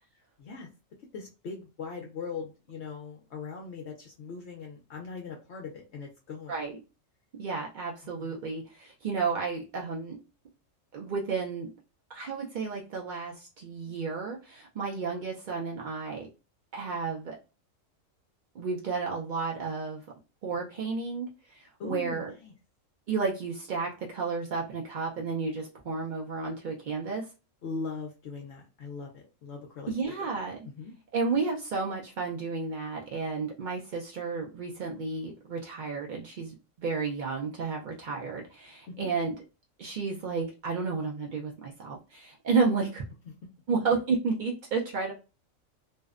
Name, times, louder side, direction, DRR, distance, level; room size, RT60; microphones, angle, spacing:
voice 1, 1.1-6.5 8.2-8.4 21.8-22.5 27.6-30.2 30.6-30.9 38.9-39.1, left 4 dB, 65° left, 0 dB, 0.7 m, -40 dB
voice 2, 7.4-10.2 10.9-11.7 12.1-16.3 16.7-17.4 18.5-20.0 20.4-22.3 23.1-27.3 29.9-30.6 31.1-39.3 39.8-43.0 43.7-45.1, right 4 dB, 75° right, -2 dB, 0.4 m, -32 dB
2.5 x 2.0 x 2.3 m, 0.30 s
omnidirectional pair, 1.4 m